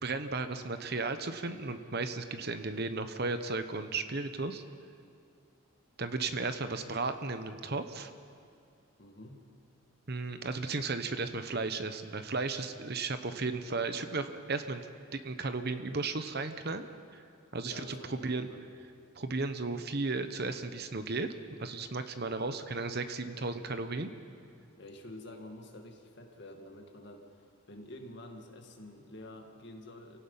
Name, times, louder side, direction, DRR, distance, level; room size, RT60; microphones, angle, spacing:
voice 1, 0.0-4.6 6.0-8.1 10.1-14.9 15.1-16.8 17.1-17.2 17.5-18.5 19.1-21.3 21.6-24.1, right 3 dB, 50° right, 9 dB, 1.0 m, -35 dB
voice 2, 9.0-9.5 17.6-18.7 24.8-30.2, left 1 dB, 55° left, 3 dB, 2.1 m, -48 dB
28.5 x 17.0 x 5.7 m, 2.3 s
head